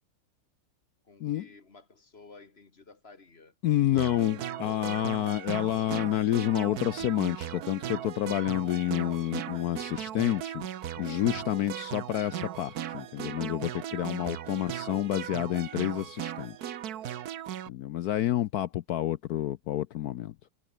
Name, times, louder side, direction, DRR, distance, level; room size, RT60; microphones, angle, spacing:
voice 1, 1.1-3.5, left 3 dB, 30° left, 1.8 m, -54 dB
voice 2, 3.6-10.7 11.0-16.7 17.7-20.3, left 13 dB, 80° left, 0.8 m, -29 dB
sound 1, 4.0-17.7, right 10 dB, 55° right, 1.2 m, -37 dB
omnidirectional pair, 2.2 m